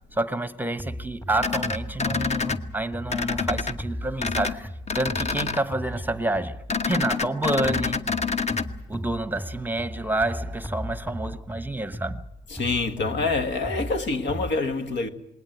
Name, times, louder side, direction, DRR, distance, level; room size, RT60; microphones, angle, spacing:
voice 1, 0.1-8.1 8.9-12.2, right 2 dB, 10° right, 1.0 m, -29 dB
sound 1, 0.8-6.8 7.6-14.5, equal, 15° left, 2.2 m, -36 dB
sound 2, 1.4-2.6 3.1-3.7 4.2-4.5 4.9-5.6 6.7-8.6, left 4 dB, 35° left, 1.2 m, -27 dB
voice 2, 12.5-15.1, left 3 dB, 65° left, 1.8 m, -26 dB
20.5 x 18.5 x 9.4 m
cardioid pair, 90°, 20 cm